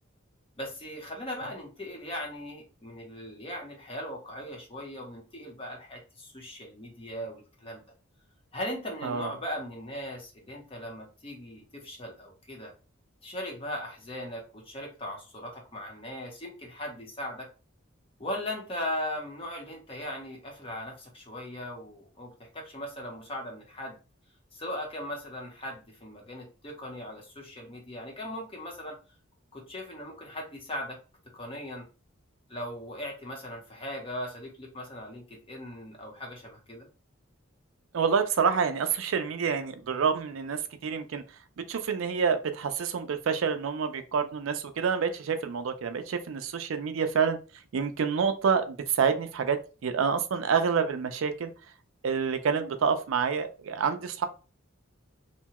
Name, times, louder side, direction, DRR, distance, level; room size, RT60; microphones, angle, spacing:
voice 1, 0.6-7.8 8.5-12.7 13.2-17.5 18.2-24.0 24.5-29.0 29.5-31.0 31.3-31.9 32.5-36.9, left 1 dB, 25° left, 0 dB, 0.7 m, -38 dB
voice 2, 9.0-9.3 37.9-41.2 41.6-47.4 47.7-51.5 52.0-54.2, right 6 dB, 75° right, 9 dB, 0.4 m, -28 dB
2.8 x 2.2 x 2.8 m, 0.34 s
head